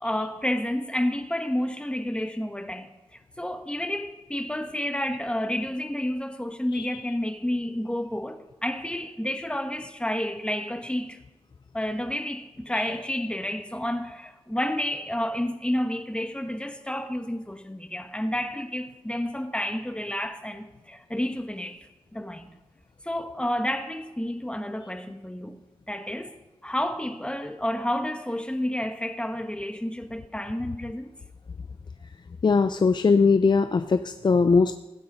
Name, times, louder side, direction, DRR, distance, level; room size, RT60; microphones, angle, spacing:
voice 1, 0.0-11.2 11.7-22.5 23.0-25.6 25.9-31.1, left 1 dB, 10° left, 1.2 m, -30 dB
voice 2, 32.4-34.8, left 4 dB, 50° left, 0.5 m, -20 dB
16.0 x 9.4 x 5.4 m
cardioid pair, 65°, 10 cm